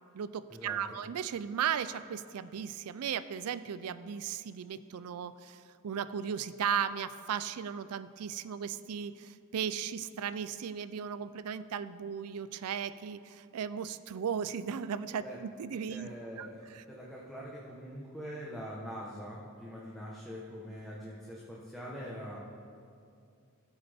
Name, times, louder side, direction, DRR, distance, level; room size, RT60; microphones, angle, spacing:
voice 1, 0.1-16.1 16.4-16.5 16.7-16.8, right 7 dB, 85° right, 14 dB, 0.4 m, -36 dB
voice 2, 15.9-22.4, equal, ahead, -6 dB, 1.1 m, -43 dB
15.0 x 8.0 x 3.5 m, 2.3 s
head